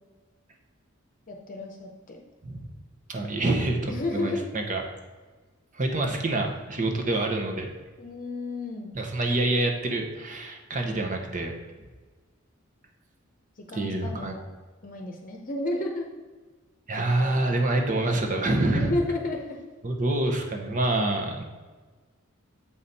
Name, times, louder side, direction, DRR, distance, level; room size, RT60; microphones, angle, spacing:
voice 1, 1.3-2.2 3.9-4.4 8.0-8.9 13.6-14.4 14.8-16.1 17.2-17.3 18.7-19.6, left 2 dB, 40° left, 1 dB, 0.8 m, -32 dB
voice 2, 3.1-4.8 5.7-7.7 8.9-11.5 13.7-14.4 16.9-18.9 19.8-21.4, right 2 dB, 40° right, 3 dB, 1.0 m, -26 dB
7.3 x 5.1 x 4.1 m, 1.3 s
head